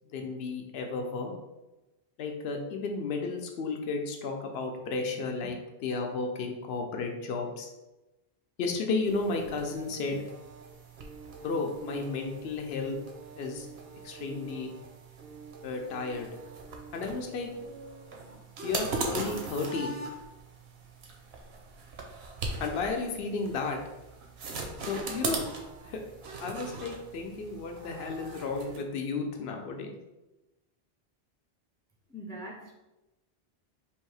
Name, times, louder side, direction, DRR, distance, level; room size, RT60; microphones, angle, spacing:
voice 1, 0.0-1.3 2.2-7.7 8.6-10.2 11.4-13.0 13.4-13.7 14.0-14.7 15.6-16.3 16.9-17.5 18.6-20.0 22.6-23.8 24.9-25.4 25.8-26.0 26.4-30.0, left 4 dB, 75° left, 3 dB, 0.9 m, -33 dB
sound 1, 9.0-28.8, right 3 dB, 80° right, 1.0 m, -40 dB
voice 2, 32.1-32.7, right 1 dB, 5° left, 0 dB, 0.3 m, -42 dB
3.4 x 2.7 x 4.6 m, 1.0 s
omnidirectional pair, 1.1 m